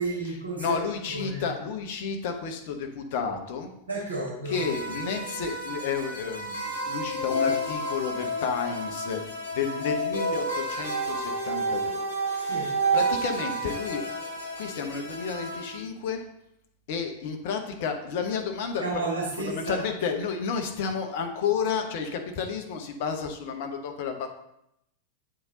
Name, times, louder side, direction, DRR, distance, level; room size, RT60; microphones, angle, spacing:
voice 1, 0.0-0.8 1.1-1.4 3.9-4.7 12.3-12.7 18.8-19.9, right 3 dB, 70° right, -4 dB, 1.5 m, -32 dB
voice 2, 0.6-3.7 4.5-12.0 12.3-14.0 14.5-16.2 16.9-18.8 19.5-24.3, left 6 dB, 50° left, 4 dB, 0.9 m, -31 dB
sound 1, 4.5-15.8, right 1 dB, 70° left, 1.7 m, -30 dB
8.0 x 3.7 x 3.8 m, 0.78 s
figure-of-eight pair, 90°, 0 cm